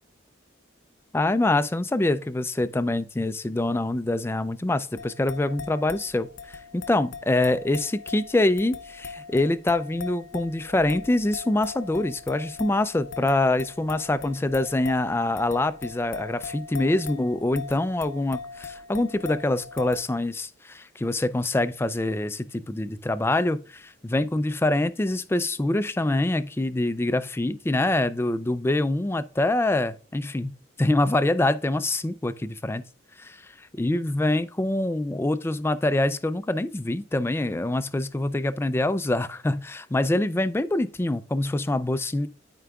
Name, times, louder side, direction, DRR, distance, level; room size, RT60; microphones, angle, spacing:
voice 1, 1.1-32.8 33.2-42.3, left 2 dB, 15° left, 0.3 m, -25 dB
sound 1, 5.0-20.0, left 5 dB, 75° left, 0.7 m, -40 dB
12.5 x 4.7 x 2.3 m
head